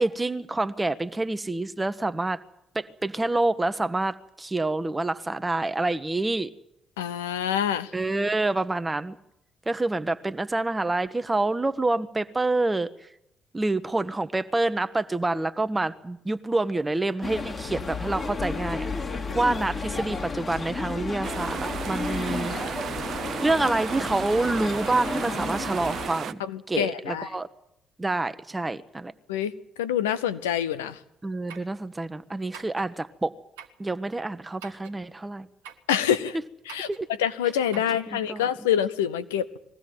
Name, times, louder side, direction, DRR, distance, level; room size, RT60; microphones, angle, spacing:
voice 1, 0.0-2.4 2.7-6.5 7.9-9.2 9.7-13.1 13.5-18.9 19.3-22.8 23.4-26.4 26.7-27.5 28.0-29.1 31.2-33.3 33.8-35.5 36.9-37.1 37.7-38.4, right 2 dB, 20° right, 11 dB, 1.0 m, -27 dB
voice 2, 7.0-7.9 26.4-27.3 29.3-29.5 29.8-31.0 35.9-36.4 36.7-36.9 37.2-39.6, left 9 dB, 80° left, 16 dB, 0.8 m, -26 dB
sound 1, 17.2-26.1, left 4 dB, 40° left, 2.4 m, -32 dB
sound 2, 21.2-26.3, right 8 dB, 55° right, 0.8 m, -34 dB
sound 3, 31.5-31.8 32.5-32.9 33.6-33.8 34.6-35.0 35.6-35.9 36.7-37.1 37.7-38.0, right 7 dB, 80° right, 1.3 m, -45 dB
21.5 x 15.5 x 9.4 m, 0.81 s
figure-of-eight pair, 45°, 0 cm